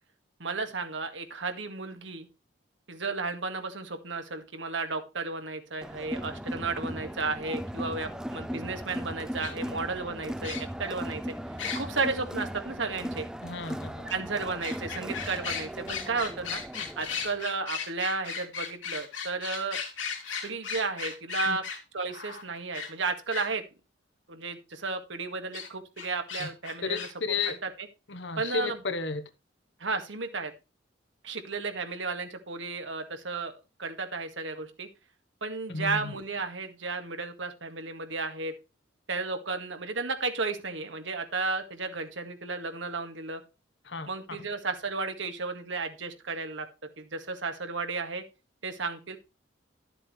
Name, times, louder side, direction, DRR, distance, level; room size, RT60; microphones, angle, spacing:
voice 1, 0.4-2.3 2.9-11.2 11.7-13.3 14.1-16.6 17.0-19.8 20.4-21.6 21.9-23.6 24.3-27.1 28.4-28.8 29.8-30.5 31.2-34.9 35.4-38.5 39.1-43.4 44.1-46.7 47.0-48.2 48.6-49.2, right 3 dB, 85° right, 1.9 m, -33 dB
Crowd, 5.8-17.4, equal, 5° right, 0.5 m, -38 dB
sound 1, 9.4-9.5 10.4-10.8 11.6-11.8 14.1-14.2 14.6-23.5 25.5-25.7 26.0-27.1 27.4-27.5, left 6 dB, 90° left, 2.8 m, -36 dB
voice 2, 13.4-14.1 21.5-21.6 26.4-26.5 26.8-27.6 28.1-29.3 35.7-36.1 43.8-44.1, left 4 dB, 65° left, 1.1 m, -33 dB
12.5 x 7.4 x 3.2 m
head